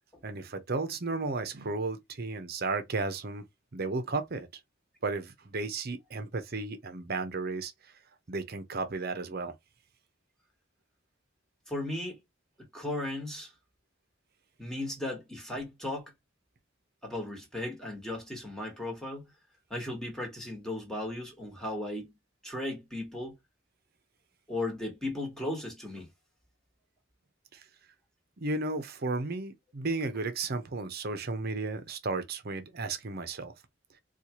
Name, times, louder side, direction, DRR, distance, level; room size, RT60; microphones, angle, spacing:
voice 1, 0.2-3.5 3.7-4.5 5.0-7.9 8.3-9.5 27.5-27.7 28.4-33.5, right 3 dB, 50° right, 0.8 m, -34 dB
voice 2, 11.7-12.2 12.7-13.5 14.6-16.1 17.0-19.3 19.7-22.1 22.4-23.4 24.5-26.1, left 1 dB, 5° left, 1.4 m, -36 dB
4.3 x 2.4 x 2.9 m
head